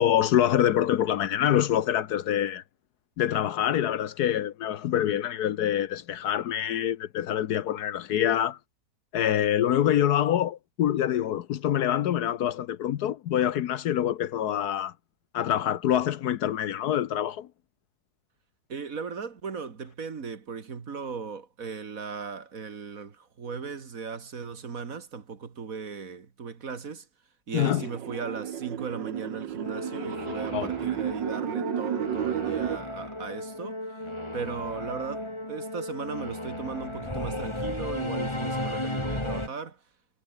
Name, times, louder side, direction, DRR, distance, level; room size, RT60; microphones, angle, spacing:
voice 1, 0.0-2.6 3.2-8.6 9.1-14.9 15.3-17.5 27.5-27.8 30.5-30.7, left 11 dB, 70° left, 1.2 m, -25 dB
voice 2, 18.7-27.1 27.5-34.1 34.3-39.8, right 5 dB, 50° right, 2.2 m, -37 dB
sound 1, 27.6-32.8, right 10 dB, 90° right, 1.8 m, -32 dB
Singing / Musical instrument, 29.6-39.5, left 1 dB, 15° left, 4.1 m, -34 dB
omnidirectional pair, 1.9 m